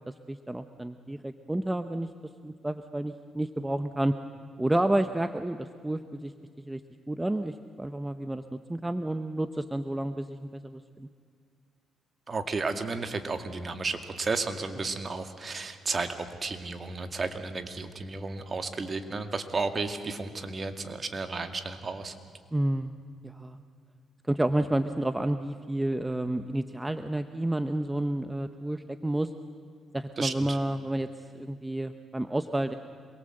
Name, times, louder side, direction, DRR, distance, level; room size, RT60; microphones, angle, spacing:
voice 1, 0.0-2.1 2.4-4.1 4.6-6.3 6.6-6.8 7.1-11.1 22.5-22.9 23.2-23.6 24.3-29.3 29.9-31.1 31.3-32.7, right 1 dB, 10° right, 9 dB, 0.9 m, -30 dB
voice 2, 12.3-22.1 30.2-30.6, right 3 dB, 35° right, 7 dB, 2.2 m, -33 dB
27.0 x 22.0 x 7.9 m, 2.2 s
cardioid pair, 90°, 0 cm